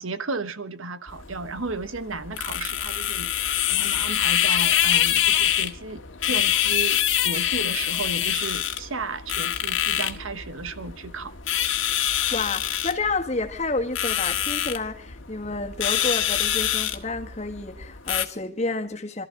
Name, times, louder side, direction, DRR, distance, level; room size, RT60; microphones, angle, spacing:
voice 1, 0.0-3.3 3.7-11.3, right 3 dB, 85° right, 1.2 m, -34 dB
sound 1, 1.1-18.3, left 11 dB, 70° left, 1.5 m, -25 dB
voice 2, 12.1-19.2, left 3 dB, 35° left, 1.6 m, -30 dB
26.0 x 13.5 x 3.8 m
head